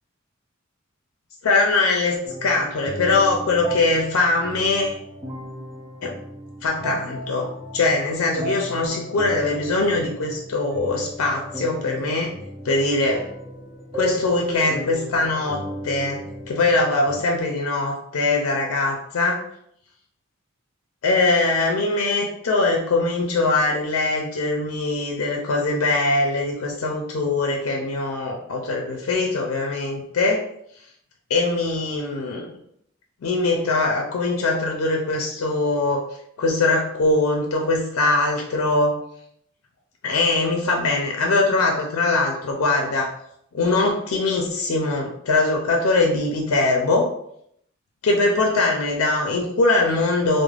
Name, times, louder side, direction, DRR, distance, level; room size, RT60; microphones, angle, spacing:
voice 1, 1.4-5.0 6.0-6.1 6.6-12.3 12.6-13.3 13.9-19.4 21.0-30.5 31.3-32.5 33.2-36.0 36.4-39.0 40.0-43.1 43.5-47.1 48.0-50.4, left 3 dB, 80° left, 1 dB, 0.4 m, -22 dB
sound 1, 2.3-17.2, equal, 10° right, 0.4 m, -35 dB
2.4 x 2.0 x 3.2 m, 0.72 s
head